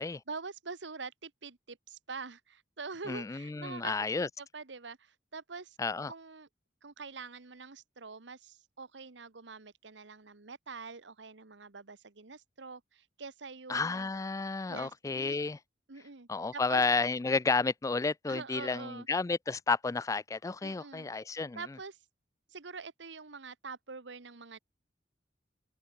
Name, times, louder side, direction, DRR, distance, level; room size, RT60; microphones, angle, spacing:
voice 1, 0.0-5.8 6.1-6.5 6.8-14.1 14.7-15.4 15.9-16.8 18.2-19.1 20.6-21.1 21.5-22.0 22.5-24.6, right 4 dB, 80° right, 1.3 m, -45 dB
voice 2, 3.1-4.3 5.8-6.1 13.7-15.6 16.3-21.6, left 4 dB, 20° left, 0.3 m, -31 dB
open air
head